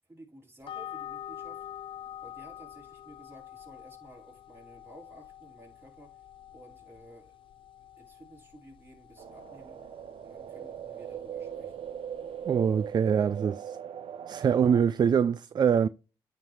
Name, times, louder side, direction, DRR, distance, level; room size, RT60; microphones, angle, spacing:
voice 1, 0.1-1.7 2.2-6.1 6.5-7.3 8.0-9.8 10.2-11.8, right 1 dB, 25° right, 4.5 m, -53 dB
sound 1, 0.6-13.0, left 11 dB, 60° left, 0.5 m, -47 dB
sound 2, 9.2-14.8, right 9 dB, 65° right, 0.8 m, -40 dB
voice 2, 12.5-13.8 14.3-15.9, right 7 dB, 45° right, 0.4 m, -24 dB
9.3 x 3.6 x 4.7 m
cardioid pair, 75°, 10 cm